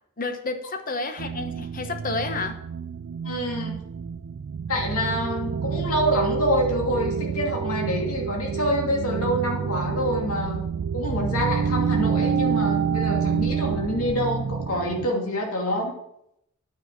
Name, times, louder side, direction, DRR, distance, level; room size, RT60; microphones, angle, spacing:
voice 1, 0.2-2.6, left 3 dB, 40° left, 7 dB, 1.1 m, -30 dB
sound 1, 1.2-15.1, right 6 dB, 60° right, 0.4 m, -28 dB
voice 2, 3.2-3.8 4.7-10.6 10.9-15.9, equal, 75° left, 0 dB, 2.8 m, -26 dB
9.4 x 6.0 x 7.9 m, 0.78 s
head